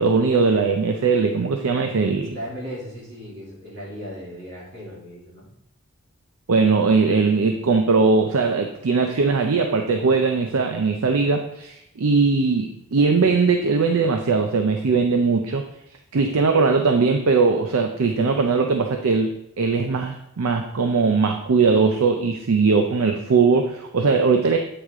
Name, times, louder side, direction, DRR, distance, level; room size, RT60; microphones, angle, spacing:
voice 1, 0.0-2.3 6.5-15.6 16.1-19.3 19.6-24.6, right 4 dB, 70° right, 5 dB, 0.5 m, -20 dB
voice 2, 2.3-5.5, equal, 50° right, -5 dB, 2.9 m, -36 dB
8.2 x 4.8 x 3.6 m, 0.80 s
head